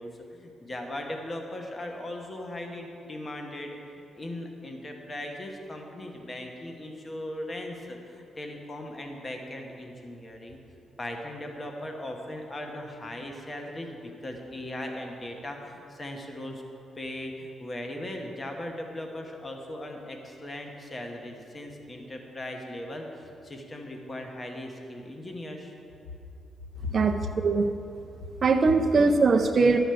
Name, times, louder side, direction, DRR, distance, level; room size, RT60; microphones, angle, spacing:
voice 1, 0.0-10.6 11.0-16.6 17.0-25.7 26.8-26.9, left 1 dB, 25° left, 2 dB, 1.1 m, -38 dB
voice 2, 26.9-27.7 28.4-29.8, right 4 dB, 40° right, 2 dB, 0.5 m, -21 dB
11.5 x 5.0 x 7.7 m, 2.7 s
cardioid pair, 130°, 0 cm